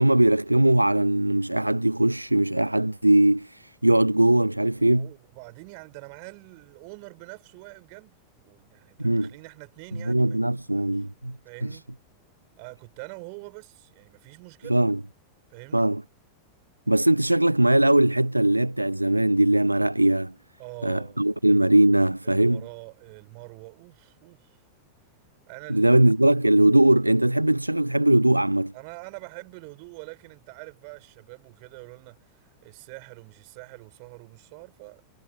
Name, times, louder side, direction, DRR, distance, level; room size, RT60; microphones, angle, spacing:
voice 1, 0.0-5.1 9.0-9.3 10.0-11.4 11.6-11.8 14.7-15.0 15.7-16.0 16.9-20.3 20.8-22.6 25.7-28.7, right 1 dB, 85° right, 0.5 m, -20 dB
voice 2, 4.7-10.4 11.4-11.9 12.6-14.8 15.5-15.9 20.6-21.3 22.2-24.6 25.5-25.9 28.7-35.0, right 36 dB, 45° right, 7.7 m, -45 dB
figure-of-eight pair, 90°, 0 cm